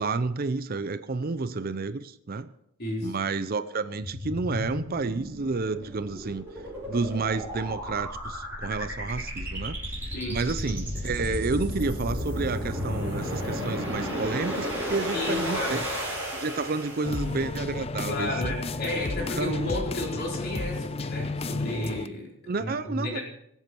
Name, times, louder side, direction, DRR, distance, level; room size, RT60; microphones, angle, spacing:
voice 1, 0.0-2.5 3.0-6.5 6.9-15.8 16.3-18.5 19.4-19.6 22.5-23.2, right 3 dB, 40° right, 12 dB, 0.5 m, -30 dB
voice 2, 2.8-3.2 10.1-10.5 15.1-15.9 18.0-23.2, left 1 dB, 45° left, -2 dB, 4.5 m, -32 dB
sound 1, 4.0-17.4, equal, 10° right, 5.6 m, -33 dB
sound 2, 17.0-22.1, left 3 dB, 25° left, 0.4 m, -32 dB
23.5 x 8.2 x 4.6 m, 0.77 s
head